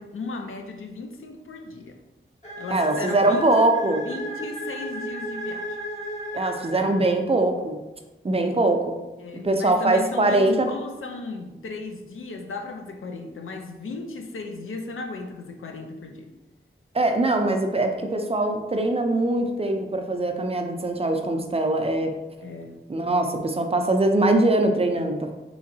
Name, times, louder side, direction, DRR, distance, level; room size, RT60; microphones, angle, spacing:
voice 1, 0.0-2.0 2.6-3.6 4.1-5.8 9.2-16.3 22.4-22.8, left 3 dB, 80° left, 4 dB, 0.5 m, -35 dB
sound 1, 2.4-7.3, equal, 35° left, 1.3 m, -34 dB
voice 2, 2.7-4.0 6.3-7.8 8.2-9.0 9.4-10.7 16.9-22.1 22.9-25.3, right 2 dB, 30° right, 4 dB, 0.4 m, -22 dB
3.6 x 3.1 x 2.6 m, 1.1 s
wide cardioid pair, 80°, 21 cm